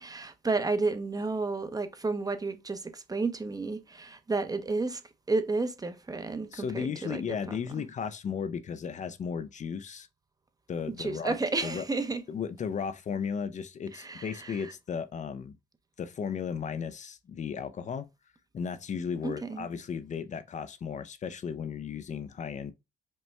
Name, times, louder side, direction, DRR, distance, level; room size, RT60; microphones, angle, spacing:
voice 1, 0.0-5.0 5.3-7.2 11.0-12.2 13.9-14.6 19.2-19.6, right 3 dB, 25° right, 0.8 m, -31 dB
voice 2, 6.5-10.1 10.7-11.4 11.6-11.9 12.3-15.6 16.0-18.1 18.5-22.7, left 6 dB, 50° left, 0.5 m, -35 dB
5.3 x 2.2 x 3.2 m
cardioid pair, 70°, 16 cm